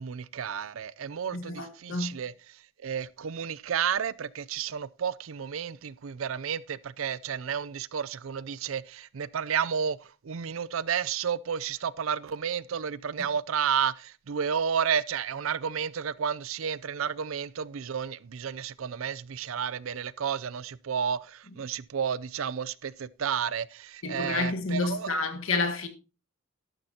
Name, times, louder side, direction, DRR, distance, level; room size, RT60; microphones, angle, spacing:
voice 1, 0.0-2.3 2.8-25.1, right 7 dB, 75° right, 0.5 m, -31 dB
voice 2, 1.3-2.1 24.0-25.9, left 3 dB, 75° left, 1.5 m, -29 dB
13.0 x 12.0 x 2.8 m
head